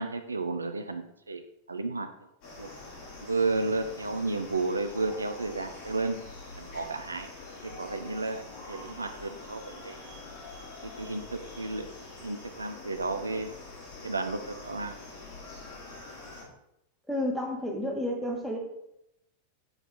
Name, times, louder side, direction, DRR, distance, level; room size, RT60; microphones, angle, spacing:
voice 1, 0.0-1.4 1.7-2.1 2.6-2.7 3.2-6.2 6.6-7.3 7.6-10.1 11.0-11.9 12.2-13.5 14.0-15.0, right 3 dB, 80° right, 7 dB, 0.5 m, -32 dB
sound 1, 2.4-16.4, left 3 dB, 45° left, 2.4 m, -45 dB
voice 2, 17.1-18.6, left 1 dB, ahead, -2 dB, 1.9 m, -31 dB
8.0 x 4.4 x 3.8 m, 0.82 s
figure-of-eight pair, 90°, 0 cm